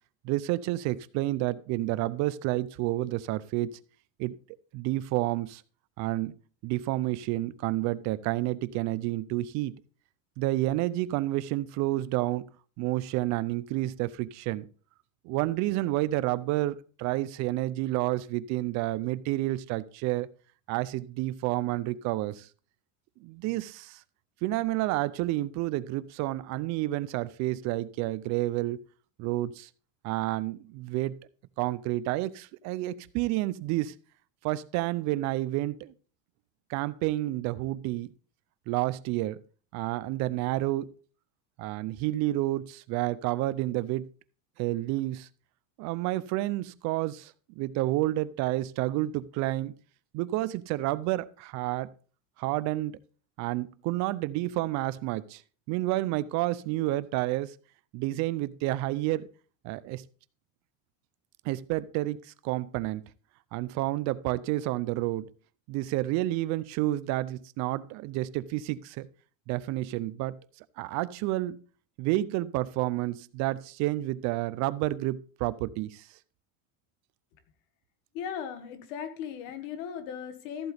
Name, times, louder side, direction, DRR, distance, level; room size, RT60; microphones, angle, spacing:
voice 1, 0.2-3.8 4.2-4.4 4.7-5.6 6.0-6.3 6.6-9.8 10.4-12.5 12.8-14.7 15.2-20.3 20.7-22.5 23.2-24.0 24.4-28.8 29.2-29.7 30.0-31.1 31.6-33.9 34.4-35.9 36.7-38.1 38.7-39.4 39.7-40.9 41.6-44.1 44.6-45.3 45.8-49.7 50.1-51.9 52.4-53.0 53.4-55.4 55.7-57.5 57.9-59.3 59.6-60.0 61.4-63.0 63.5-65.3 65.7-69.1 69.5-70.4 70.8-71.6 72.0-76.1, right 17 dB, 45° right, 18 dB, 0.5 m, -30 dB
voice 2, 78.1-80.7, left 8 dB, 80° left, 9 dB, 1.9 m, -37 dB
14.0 x 7.8 x 3.4 m, 0.39 s
cardioid pair, 165°, 38 cm